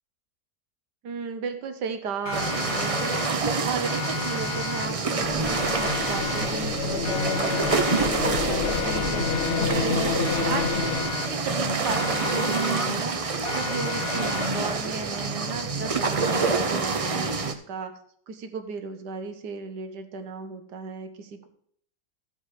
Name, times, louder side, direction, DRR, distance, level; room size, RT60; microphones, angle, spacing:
voice 1, 1.0-3.3 3.6-17.9 18.3-21.5, right 5 dB, 85° right, 8 dB, 1.6 m, -35 dB
Siren, 2.3-3.6 3.9-5.2 5.5-6.8 7.1-8.4 8.7-10.0 10.3-11.6 11.9-13.2 13.5-14.8, left 7 dB, 85° left, 1.5 m, -34 dB
sound 1, 2.3-17.5, right 4 dB, 50° right, 0.4 m, -27 dB
sound 2, 5.2-11.1, left 5 dB, 50° left, 1.1 m, -28 dB
14.0 x 5.3 x 4.9 m, 0.64 s
omnidirectional pair, 1.8 m